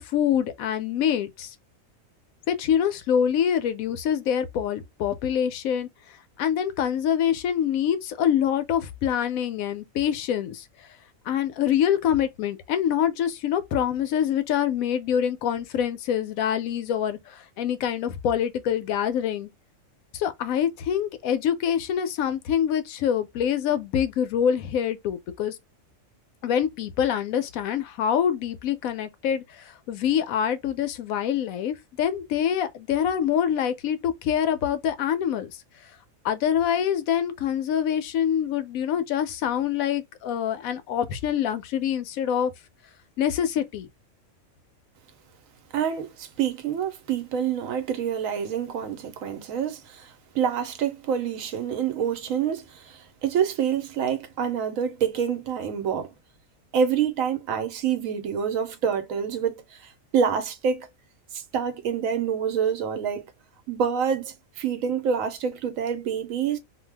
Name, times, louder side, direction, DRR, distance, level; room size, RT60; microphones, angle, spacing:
voice 1, 0.0-1.5 2.5-5.9 6.4-10.9 11.3-19.5 20.1-25.6 26.4-35.6 36.2-42.5 43.2-43.9, left 9 dB, 80° left, 1.0 m, -25 dB
voice 2, 45.7-56.1 56.7-60.9 61.3-63.3 63.7-66.6, right 7 dB, 80° right, 1.0 m, -27 dB
2.6 x 2.2 x 3.2 m
omnidirectional pair, 1.4 m